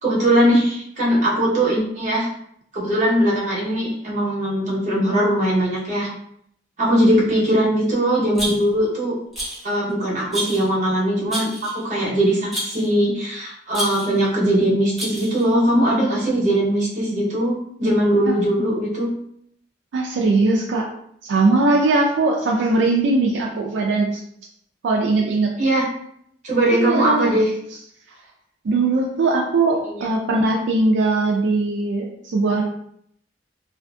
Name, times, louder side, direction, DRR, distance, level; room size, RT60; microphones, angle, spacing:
voice 1, 0.0-2.3 2.7-6.1 6.8-9.2 9.6-19.1 25.6-25.8 26.4-27.5 29.8-30.1, right 1 dB, 45° right, -6 dB, 0.9 m, -20 dB
Rattle, 8.3-8.9 9.3-9.7 10.3-10.7 11.3-11.8 12.5-12.9 13.7-14.2 15.0-15.5, right 1 dB, ahead, 0.8 m, -29 dB
voice 2, 19.9-20.9 21.2-24.2 24.8-25.5 26.7-27.3 28.6-32.6, right 3 dB, 85° right, 0 dB, 0.4 m, -20 dB
2.5 x 2.5 x 2.3 m, 0.70 s
head